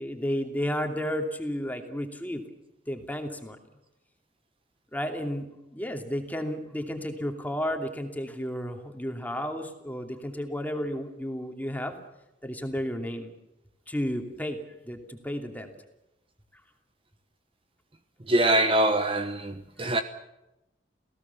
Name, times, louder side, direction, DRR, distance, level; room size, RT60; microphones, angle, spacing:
voice 1, 0.0-2.4 2.9-3.6 4.9-11.9 12.4-13.3 13.9-15.7, equal, 10° left, 2.7 m, -32 dB
voice 2, 18.3-20.0, right 1 dB, 30° right, 1.1 m, -23 dB
28.5 x 17.0 x 7.1 m
head